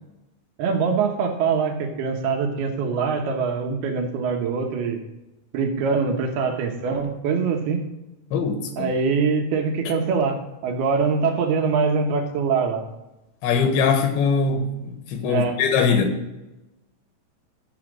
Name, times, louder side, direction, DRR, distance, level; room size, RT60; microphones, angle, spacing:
voice 1, 0.6-5.0 5.5-7.9 8.8-12.8 15.3-15.6, right 5 dB, 70° right, 2.8 m, -23 dB
voice 2, 8.3-8.9 9.9-10.0 13.4-16.2, left 5 dB, 85° left, 3.6 m, -22 dB
11.5 x 5.8 x 6.1 m
omnidirectional pair, 5.1 m